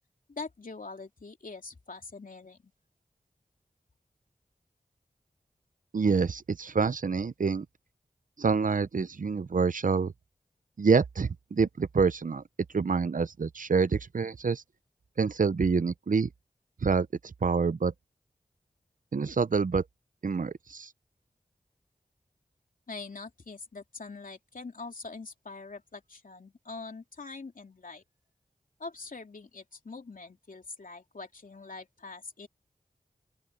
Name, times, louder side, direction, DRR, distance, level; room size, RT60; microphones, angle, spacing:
voice 1, 0.3-2.7 22.9-28.0 28.8-32.5, left 3 dB, 70° left, 3.1 m, -43 dB
voice 2, 5.9-7.7 8.4-10.1 10.8-12.4 12.7-14.6 15.2-16.3 16.8-17.9 19.1-19.8 20.2-20.9, right 5 dB, 65° right, 0.7 m, -27 dB
open air
wide cardioid pair, 55°, 15 cm